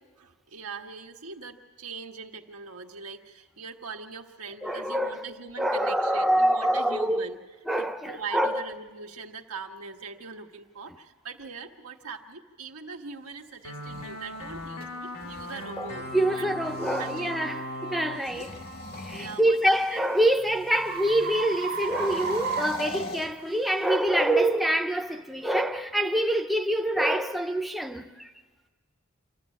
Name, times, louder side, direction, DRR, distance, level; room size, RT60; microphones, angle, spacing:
voice 1, 0.2-7.4 7.8-16.7 16.9-17.6 18.1-18.5 19.1-20.0, right 5 dB, 85° right, 1.4 m, -42 dB
voice 2, 4.6-5.2 5.6-7.3 7.7-8.7 15.8-18.5 19.0-28.3, right 1 dB, ahead, 0.6 m, -26 dB
sound 1, 13.6-19.8, equal, 85° left, 2.3 m, -39 dB
sound 2, 13.6-17.4 18.1-20.2 21.7-24.0, left 2 dB, 45° left, 1.1 m, -42 dB
sound 3, 14.8-14.9 15.5-15.7 16.3-16.5 19.1-23.6, right 4 dB, 45° right, 1.0 m, -35 dB
26.5 x 13.5 x 8.4 m
head